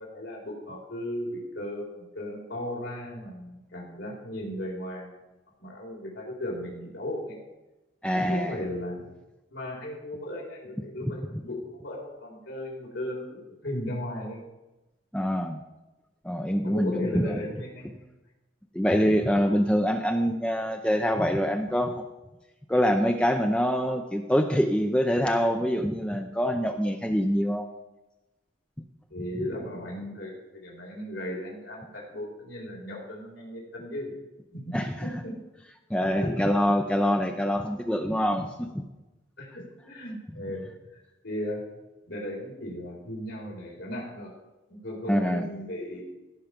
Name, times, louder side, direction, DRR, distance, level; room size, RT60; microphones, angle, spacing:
voice 1, 0.0-5.1 5.6-7.4 8.1-9.1 9.5-14.4 16.6-18.0 29.1-34.1 34.5-35.4 36.2-36.4 38.1-38.2 39.4-41.0 41.2-41.6 42.1-44.3 44.7-46.0, left 1 dB, 70° left, -3 dB, 3.9 m, -36 dB
voice 2, 8.0-8.6 15.1-15.6 16.2-17.4 18.7-22.0 22.7-27.7 34.7-35.1 35.9-38.8 45.1-45.5, equal, 5° left, 5 dB, 0.5 m, -25 dB
16.5 x 5.7 x 5.1 m, 1.0 s
head